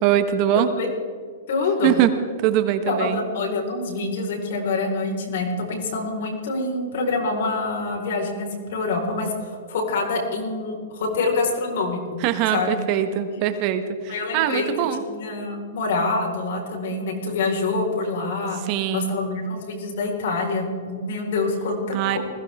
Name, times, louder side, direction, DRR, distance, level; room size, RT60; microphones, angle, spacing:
voice 1, 0.0-0.7 1.8-2.1 2.4-3.2 12.2-15.0 18.6-19.1 21.9-22.2, right 11 dB, 35° right, 9 dB, 1.2 m, -22 dB
voice 2, 0.6-0.9 1.5-1.9 2.9-12.2 12.5-12.8 13.3-13.4 14.1-14.7 15.1-18.6 18.9-22.2, left 3 dB, 65° left, 1 dB, 4.5 m, -26 dB
20.5 x 16.0 x 3.6 m, 2.1 s
hypercardioid pair, 155°, 0 cm